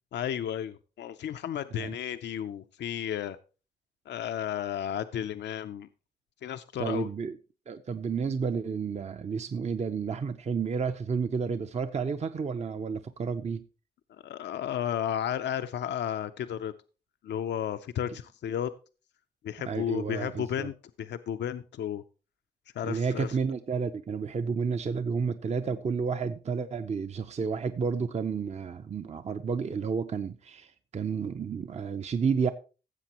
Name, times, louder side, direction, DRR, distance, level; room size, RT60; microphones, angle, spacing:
voice 1, 0.1-3.4 4.1-5.9 6.4-7.1 14.1-16.7 17.2-18.7 19.4-22.0 22.7-23.4, left 10 dB, 85° left, 0.5 m, -33 dB
voice 2, 6.8-7.4 7.7-13.6 19.6-20.7 22.8-32.5, right 5 dB, 40° right, 0.6 m, -31 dB
16.0 x 7.5 x 2.9 m
cardioid pair, 95°, 18 cm